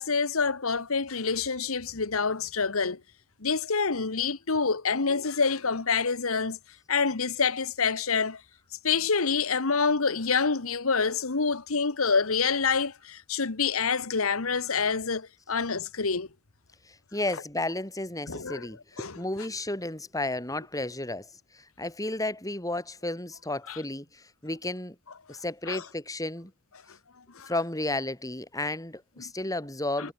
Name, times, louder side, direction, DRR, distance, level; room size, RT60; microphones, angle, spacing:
voice 1, 0.0-3.0 3.4-6.6 6.9-8.4 8.8-16.3 18.3-18.7 19.0-19.2 23.7-23.8 25.7-25.8 27.3-27.5 29.2-29.3 30.0-30.1, left 5 dB, 70° left, 1.3 m, -27 dB
voice 2, 16.9-25.0 25.3-26.5 27.5-30.1, left 2 dB, 15° left, 6.5 m, -33 dB
head